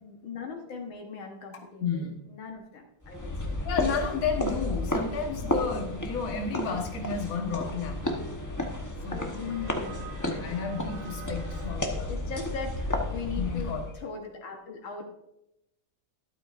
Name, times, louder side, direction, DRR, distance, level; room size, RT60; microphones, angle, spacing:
voice 1, 0.0-3.7 9.3-10.7 12.1-15.0, left 5 dB, 70° left, 2 dB, 1.9 m, -40 dB
voice 2, 1.8-2.1 3.6-8.2 9.0-9.3 9.9-10.0 10.3-12.1 13.4-13.8, left 5 dB, 45° left, 1 dB, 1.6 m, -32 dB
sound 1, 3.0-13.9, left 1 dB, 15° left, 0.5 m, -32 dB
sound 2, 6.3-11.8, right 3 dB, 70° right, 3.8 m, -48 dB
12.5 x 12.0 x 2.5 m, 0.87 s
omnidirectional pair, 2.2 m